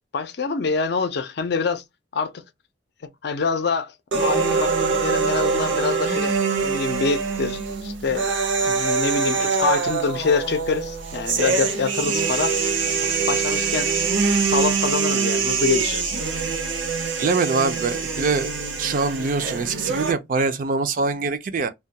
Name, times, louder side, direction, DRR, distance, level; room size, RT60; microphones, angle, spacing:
voice 1, 0.1-1.8 2.1-2.3 3.2-3.9 4.2-6.3 6.6-8.3 8.6-14.0 14.4-16.2, left 4 dB, 60° left, 0.5 m, -26 dB
sound 1, 4.1-20.1, right 5 dB, 80° right, 0.7 m, -24 dB
voice 2, 17.2-18.5 18.8-21.7, right 4 dB, 45° right, 0.4 m, -23 dB
2.3 x 2.2 x 2.7 m
head